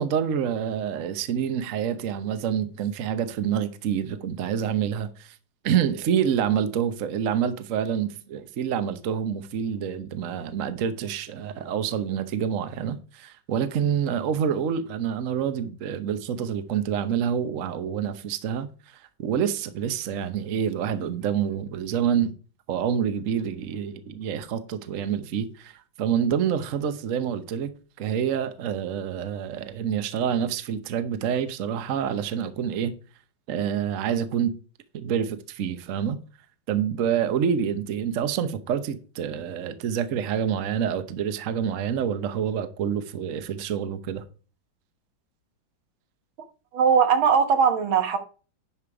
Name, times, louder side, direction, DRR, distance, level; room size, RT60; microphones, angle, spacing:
voice 1, 0.0-5.4 5.6-22.3 22.7-27.7 28.0-32.9 33.5-34.5 34.9-36.2 36.7-44.2, right 8 dB, 50° right, 1.1 m, -27 dB
voice 2, 46.7-48.2, right 6 dB, 85° right, 2.1 m, -20 dB
11.0 x 5.1 x 4.7 m
omnidirectional pair, 2.2 m